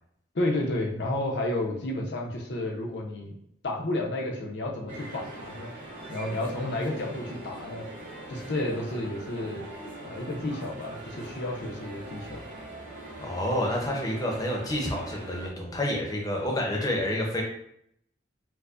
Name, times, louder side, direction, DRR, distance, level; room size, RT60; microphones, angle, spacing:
voice 1, 0.3-3.3 3.6-5.7 6.1-7.9 8.3-9.6 10.0-12.4, left 1 dB, 65° left, 0 dB, 0.7 m, -31 dB
sound 1, 4.9-15.5, right 1 dB, 65° right, 1.3 m, -42 dB
voice 2, 13.2-17.4, left 1 dB, 20° left, -1 dB, 0.6 m, -29 dB
4.5 x 2.1 x 2.4 m, 0.73 s
head